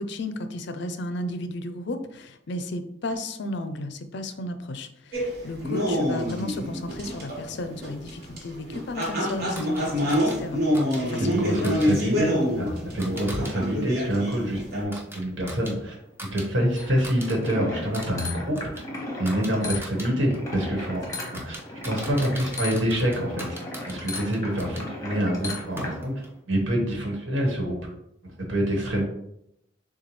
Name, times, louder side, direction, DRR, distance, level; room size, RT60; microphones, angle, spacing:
voice 1, 0.0-12.0, left 1 dB, 60° left, 9 dB, 0.5 m, -34 dB
sound 1, 5.1-14.8, equal, 55° right, 1.4 m, -27 dB
sound 2, 9.0-13.5 13.9-16.5 16.8-17.5 17.8-24.9 25.5-26.4, right 1 dB, 10° right, 0.7 m, -43 dB
voice 2, 11.2-16.0 16.3-18.8 19.2-21.0 21.3-21.6 21.8-23.6 23.8-27.8 28.4-29.0, equal, 75° right, 0 dB, 1.3 m, -26 dB
sound 3, 16.8-26.0, left 2 dB, 15° left, 1.0 m, -36 dB
6.9 x 2.3 x 3.1 m, 0.79 s
head